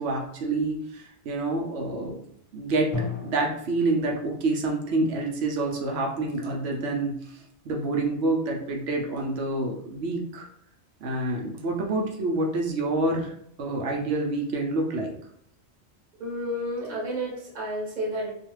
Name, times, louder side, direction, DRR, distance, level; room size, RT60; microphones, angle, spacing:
voice 1, 0.0-2.2 2.5-3.0 3.2-10.5 11.0-13.3 13.6-15.1, right 2 dB, 70° right, 0 dB, 0.8 m, -27 dB
Drum, 2.9-4.8, left 3 dB, 35° left, 0.9 m, -36 dB
voice 2, 16.2-18.3, equal, 45° right, -3 dB, 0.9 m, -31 dB
2.4 x 2.3 x 3.0 m, 0.66 s
omnidirectional pair, 1.1 m